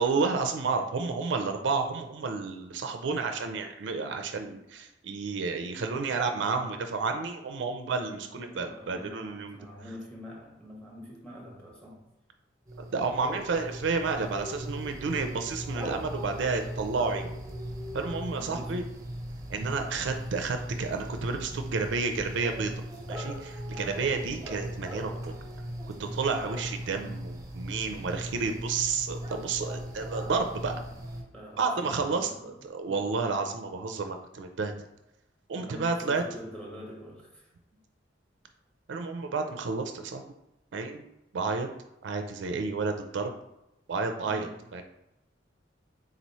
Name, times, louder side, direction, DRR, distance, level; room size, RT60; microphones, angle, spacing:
voice 1, 0.0-9.6 12.8-17.3 17.9-18.8 19.5-22.7 23.1-25.3 25.9-30.7 31.6-34.7 35.5-36.2 38.9-40.2 40.7-41.1 41.3-41.7 42.0-43.3 43.9-44.8, right 4 dB, 70° right, 5 dB, 0.4 m, -31 dB
voice 2, 8.1-12.0 18.3-18.8 19.9-20.3 23.7-24.1 31.3-32.5 32.9-33.1 35.5-37.8 44.2-44.6, equal, 5° left, -3 dB, 1.2 m, -46 dB
sound 1, 12.7-31.2, equal, 20° right, 0.6 m, -38 dB
3.9 x 3.0 x 4.1 m, 0.90 s
head